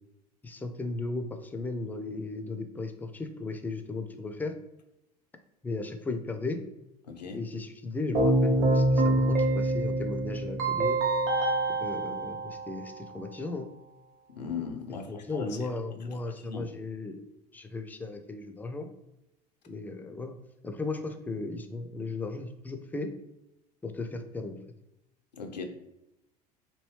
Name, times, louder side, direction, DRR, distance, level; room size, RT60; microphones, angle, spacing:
voice 1, 0.4-4.5 5.6-6.6 7.3-11.0 11.8-13.7 15.1-17.2 17.5-18.9 19.7-20.4 20.6-23.1 23.8-24.6, left 3 dB, 10° left, 7 dB, 0.3 m, -36 dB
voice 2, 7.1-7.4 14.4-15.5 16.0-16.6 25.4-25.6, left 6 dB, 85° left, 4 dB, 0.5 m, -38 dB
Keyboard (musical), 8.1-13.1, right 1 dB, 40° right, 0.8 m, -26 dB
2.9 x 2.7 x 3.1 m, 0.89 s
figure-of-eight pair, 70°, 21 cm